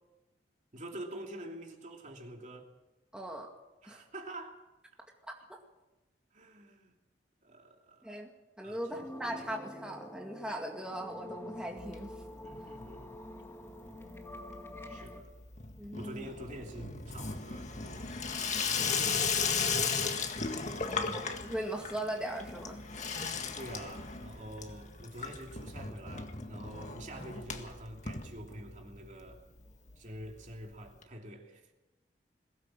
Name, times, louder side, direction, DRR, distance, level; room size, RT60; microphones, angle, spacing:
voice 1, 0.7-2.7 3.8-4.6 6.3-6.9 7.4-8.1 8.6-8.8 12.4-13.1 14.9-15.3 15.9-18.1 18.7-19.7 20.1-20.2 20.7-21.2 23.6-29.4 30.0-31.7, right 1 dB, 45° right, 2.8 m, -46 dB
voice 2, 3.1-3.5 3.8-4.0 5.5-5.6 8.0-8.3 8.6-12.1 15.8-16.3 20.8-22.8, right 1 dB, 5° right, 2.1 m, -39 dB
sound 1, 8.9-15.2, left 1 dB, 15° left, 1.9 m, -47 dB
Water tap faucet / Sink (filling or washing), 11.8-12.6 12.8-13.4 13.7-29.0 29.3-29.4 29.6-29.7 29.9-30.0 31.0-31.1, left 5 dB, 45° left, 1.8 m, -36 dB
21.5 x 17.5 x 7.6 m
head